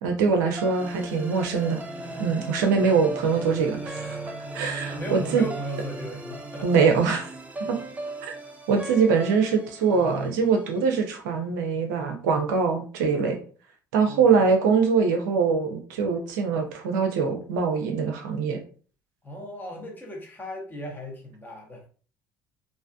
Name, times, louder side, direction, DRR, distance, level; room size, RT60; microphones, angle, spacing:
voice 1, 0.0-1.8 2.2-4.2 4.5-5.4 6.6-7.3 7.7-7.8 8.2-8.3 8.7-13.4 13.9-18.6, right 5 dB, 65° right, 4 dB, 0.5 m, -23 dB
sound 1, 0.6-10.8, right 2 dB, 15° right, 0.5 m, -36 dB
voice 2, 4.9-6.9 14.1-14.3 19.2-21.8, left 1 dB, 20° left, 1 dB, 1.0 m, -37 dB
3.3 x 2.5 x 2.3 m, 0.41 s
figure-of-eight pair, 55°, 11 cm